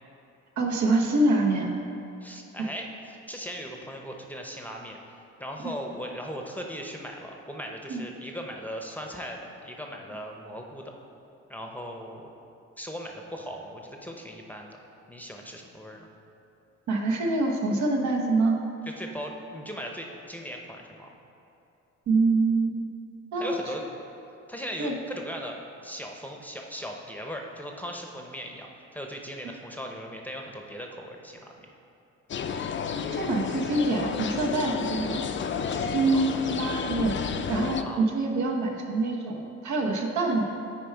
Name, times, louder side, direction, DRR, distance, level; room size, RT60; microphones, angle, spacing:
voice 1, 0.6-1.7 5.6-5.7 7.9-8.0 16.9-18.6 22.1-22.9 23.3-23.6 24.8-25.0 29.4-29.5 33.1-35.2 35.7-37.2 37.5-40.5, right 2 dB, 70° right, 1 dB, 1.0 m, -25 dB
voice 2, 2.2-5.0 5.4-10.9 11.5-12.3 12.8-14.8 15.1-16.1 19.0-21.1 23.4-23.8 24.5-25.6 25.8-31.7 36.1-36.5 37.8-38.0, equal, 5° left, 1 dB, 0.7 m, -38 dB
sound 1, 32.3-37.8, left 6 dB, 40° left, 0.4 m, -31 dB
9.2 x 4.6 x 4.5 m, 2.7 s
cardioid pair, 90°, 30 cm